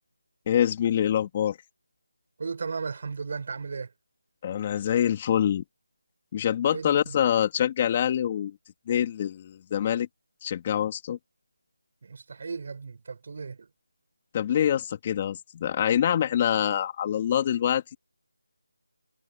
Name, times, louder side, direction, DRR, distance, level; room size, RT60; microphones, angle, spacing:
voice 1, 0.5-1.6 4.4-5.6 6.3-8.6 8.9-10.1 10.4-11.2 14.3-18.0, left 9 dB, 20° left, 3.1 m, -25 dB
voice 2, 2.4-3.9 6.7-7.2 12.0-13.7, right 5 dB, 40° right, 6.5 m, -35 dB
figure-of-eight pair, 175°, 0 cm